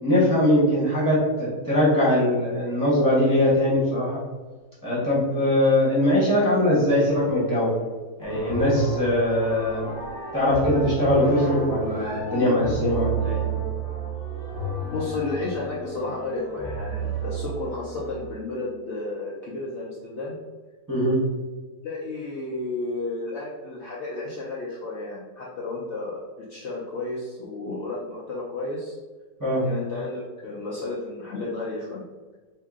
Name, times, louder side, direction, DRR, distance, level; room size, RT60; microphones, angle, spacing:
voice 1, 0.0-4.2 4.8-7.7 8.2-9.8 10.3-13.4 20.9-21.2 29.4-29.6, left 1 dB, 15° right, -9 dB, 0.8 m, -21 dB
sound 1, 7.1-7.8 8.2-18.3, right 4 dB, 20° left, 0.6 m, -31 dB
voice 2, 14.9-20.3 21.8-26.2 26.5-29.0 29.5-32.0, left 2 dB, 60° left, -5 dB, 0.7 m, -32 dB
2.8 x 2.7 x 3.5 m, 1.3 s
omnidirectional pair, 1.6 m